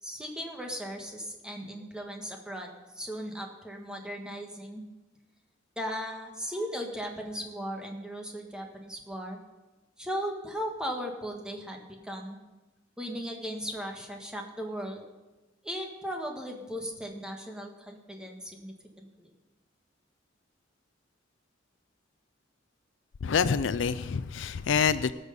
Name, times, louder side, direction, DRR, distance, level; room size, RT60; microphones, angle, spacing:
voice 1, 0.0-4.8 5.7-9.4 10.0-12.4 13.0-15.0 15.6-19.3, equal, 5° right, 1 dB, 1.6 m, -37 dB
voice 2, 23.2-25.1, left 6 dB, 75° left, 14 dB, 0.4 m, -26 dB
19.0 x 6.4 x 5.3 m, 1.1 s
head